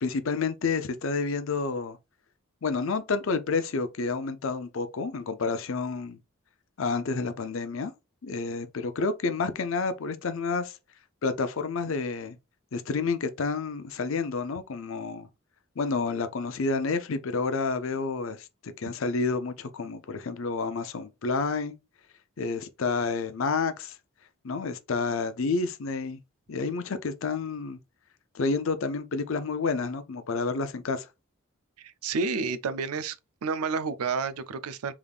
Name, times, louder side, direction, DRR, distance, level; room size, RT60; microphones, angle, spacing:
voice 1, 0.0-2.0 2.6-6.2 6.8-7.9 8.2-10.8 11.2-12.4 12.7-15.3 15.8-21.7 22.4-24.0 24.4-26.2 26.5-27.8 28.3-31.1, left 4 dB, 65° left, 0.5 m, -29 dB
voice 2, 31.8-33.2 33.4-34.9, right 4 dB, 90° right, 0.5 m, -30 dB
3.5 x 3.5 x 2.4 m
head